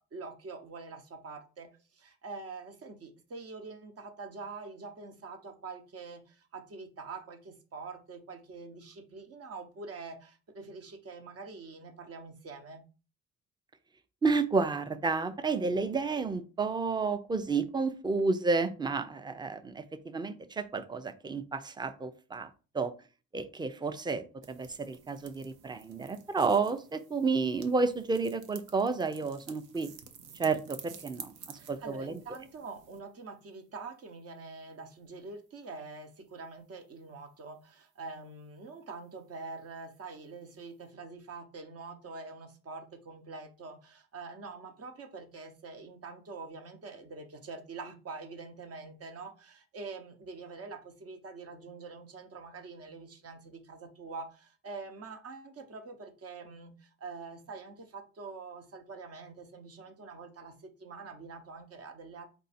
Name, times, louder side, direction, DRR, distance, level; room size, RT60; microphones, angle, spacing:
voice 1, 0.1-12.8 31.6-62.2, right 4 dB, 50° right, 6 dB, 1.0 m, -45 dB
voice 2, 14.2-22.5 22.7-22.9 23.3-29.9 30.3-32.2, right 4 dB, 15° right, 11 dB, 0.5 m, -31 dB
sound 1, 24.4-33.0, right 7 dB, 85° right, 0.7 m, -51 dB
4.6 x 2.6 x 4.2 m, 0.34 s
cardioid pair, 90°, 30 cm